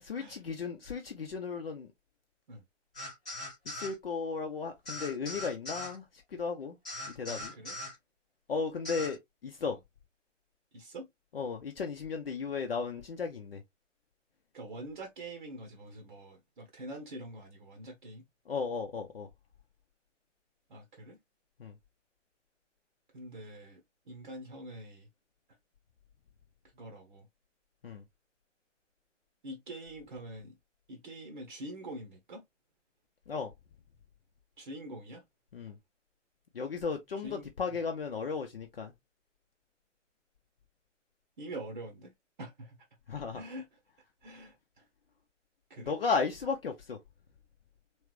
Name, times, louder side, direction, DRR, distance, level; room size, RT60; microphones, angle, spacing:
voice 1, 0.0-1.9 3.7-6.0 6.3-6.8 7.2-7.5 8.5-9.8 11.3-13.6 18.5-19.3 21.6-21.7 27.8-28.0 33.3-33.5 35.5-35.8 36.5-38.9 43.1-43.4 45.9-47.0, left 5 dB, 50° left, 0.7 m, -35 dB
sound 1, 2.9-3.9 4.9-5.9 6.8-7.9 8.8-9.1, left 1 dB, 5° left, 0.4 m, -40 dB
voice 2, 7.3-7.8 9.6-9.8 10.7-11.1 14.5-18.2 20.7-21.2 23.1-25.1 26.7-27.3 29.4-30.6 30.9-32.4 34.6-35.2 37.2-37.8 41.4-42.1 42.4-42.8 43.3-43.8 44.2-44.9 45.7-45.9, right 1 dB, 40° right, 0.9 m, -45 dB
3.3 x 3.1 x 3.1 m
figure-of-eight pair, 130°, 38 cm